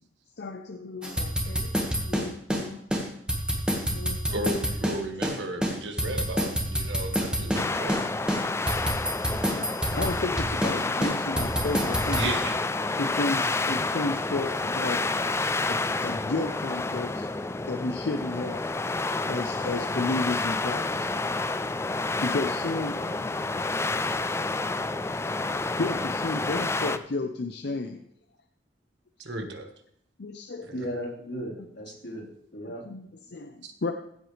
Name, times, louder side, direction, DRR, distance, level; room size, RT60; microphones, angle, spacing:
voice 1, 0.4-1.7 2.0-2.8 3.9-4.5 5.6-5.7 6.1-6.2 9.4-12.3 13.0-15.1 15.7-17.3 17.7-18.7 19.3-21.1 22.2-23.7 25.8-28.0 30.2-30.7 32.7-33.9, left 3 dB, 65° left, 6 dB, 0.7 m, -33 dB
sound 1, 1.0-2.6 2.9-3.0 3.3-5.4 5.6-7.6 7.9-8.0 8.3-10.7 11.0-12.3, equal, 5° right, 1.6 m, -27 dB
voice 2, 4.3-8.0 12.1-12.6 29.2-29.7 30.6-30.8 33.6-33.9, right 1 dB, 80° right, 6 dB, 1.5 m, -34 dB
sound 2, 7.5-27.0, left 3 dB, 15° left, 0.4 m, -29 dB
voice 3, 30.7-32.9, equal, 85° left, -4 dB, 4.2 m, -36 dB
15.5 x 7.9 x 3.3 m, 0.70 s
head